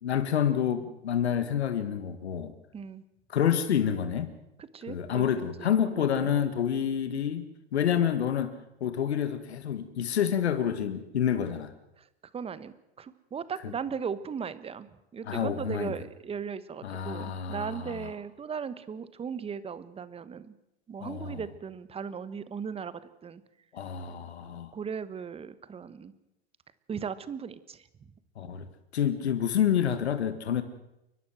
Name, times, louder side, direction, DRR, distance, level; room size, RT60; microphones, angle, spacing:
voice 1, 0.0-2.5 3.3-4.3 4.9-8.6 8.8-11.7 13.6-13.7 15.3-15.9 16.8-18.1 21.0-21.4 23.7-24.7 28.4-28.7 28.9-30.6, left 9 dB, 90° left, 11 dB, 1.8 m, -28 dB
voice 2, 2.7-3.0 4.6-5.3 5.6-6.3 12.0-12.1 12.3-20.5 20.9-23.4 24.7-26.1 26.9-27.9, right 6 dB, 20° right, 15 dB, 1.2 m, -37 dB
29.5 x 12.0 x 7.7 m, 0.89 s
hypercardioid pair, 115°, 32 cm